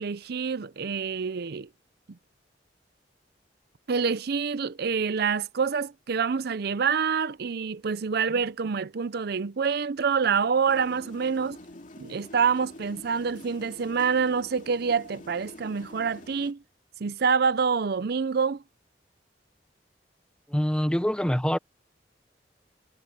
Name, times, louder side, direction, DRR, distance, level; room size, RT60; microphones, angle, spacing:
voice 1, 0.0-1.7 3.9-11.6 12.0-16.6 17.0-18.6, right 6 dB, 60° right, 0.5 m, -26 dB
sound 1, 10.7-16.5, left 1 dB, 45° left, 2.5 m, -47 dB
voice 2, 20.5-21.6, equal, 5° left, 0.7 m, -25 dB
head